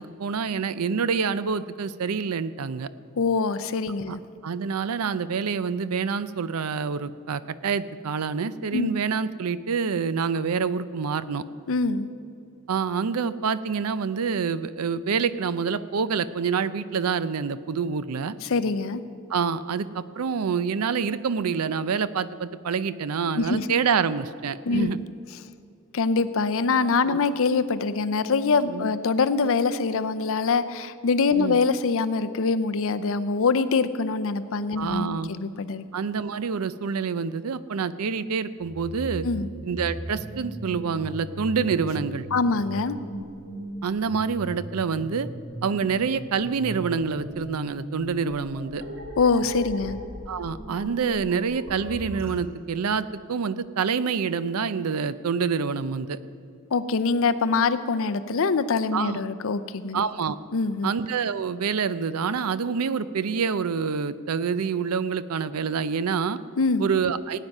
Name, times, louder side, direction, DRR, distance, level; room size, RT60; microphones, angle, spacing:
voice 1, 0.0-2.9 4.1-4.2 4.4-11.4 12.7-18.4 19.3-25.0 27.1-27.2 28.7-28.8 31.4-31.6 34.8-35.3 35.9-39.3 39.6-42.3 43.8-45.3 45.6-48.8 50.3-56.2 58.9-59.2 59.9-60.4 60.8-66.4 66.8-67.4, right 6 dB, 80° right, 15 dB, 0.5 m, -27 dB
voice 2, 3.2-4.2 8.7-8.9 11.7-12.1 18.4-19.0 23.3-23.7 24.7-24.9 25.9-35.8 39.2-39.5 42.3-43.0 49.2-50.0 56.7-60.0 60.5-60.9 66.6-66.9, left 4 dB, 65° left, 12 dB, 0.6 m, -24 dB
sound 1, 38.6-52.3, right 1 dB, 65° right, 2.0 m, -38 dB
17.5 x 9.2 x 5.4 m, 2.4 s
head